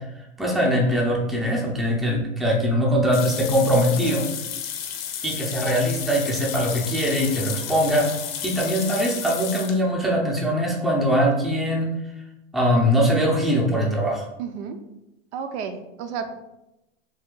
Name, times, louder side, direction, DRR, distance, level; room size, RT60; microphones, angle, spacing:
voice 1, 0.0-4.2 5.2-8.1 8.4-11.9 12.5-14.3, equal, ahead, -2 dB, 0.5 m, -22 dB
sound 1, 3.1-9.8, left 8 dB, 60° left, 0.6 m, -32 dB
voice 2, 14.4-14.8 15.3-16.3, right 6 dB, 70° right, 8 dB, 0.5 m, -31 dB
2.7 x 2.3 x 3.7 m, 0.92 s
hypercardioid pair, 110°, 35 cm